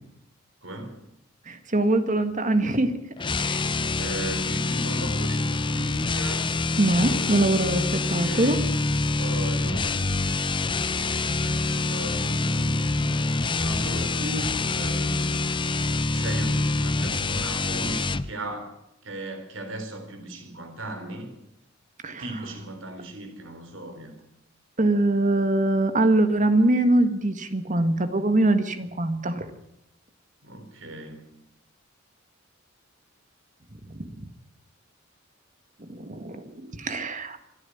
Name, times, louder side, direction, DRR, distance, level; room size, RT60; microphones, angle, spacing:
voice 1, 0.6-1.0 4.0-6.5 7.0-8.6 9.2-13.3 13.6-15.4 16.1-21.3 22.2-24.1 30.4-31.3, right 1 dB, 70° right, 6 dB, 4.1 m, -37 dB
voice 2, 1.5-3.0 3.4-3.6 6.8-8.6 22.0-22.2 24.8-29.5 33.9-34.1 35.9-37.4, right 2 dB, 40° right, 9 dB, 1.8 m, -23 dB
sound 1, 3.2-18.3, left 3 dB, 25° left, 0.7 m, -26 dB
27.0 x 9.7 x 9.9 m, 0.81 s
head